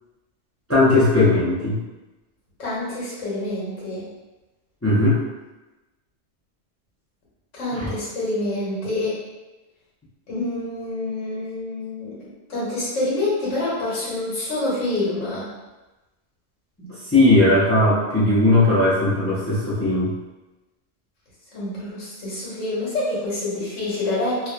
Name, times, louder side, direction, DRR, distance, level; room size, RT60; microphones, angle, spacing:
voice 1, 0.7-1.8 4.8-5.2 7.7-7.9 16.8-20.1, left 2 dB, 20° left, -10 dB, 0.4 m, -18 dB
voice 2, 2.6-4.1 7.5-9.2 10.3-12.2 12.5-15.5 21.5-24.5, left 2 dB, 85° left, -8 dB, 1.4 m, -27 dB
2.7 x 2.3 x 2.2 m, 1.1 s
omnidirectional pair, 1.2 m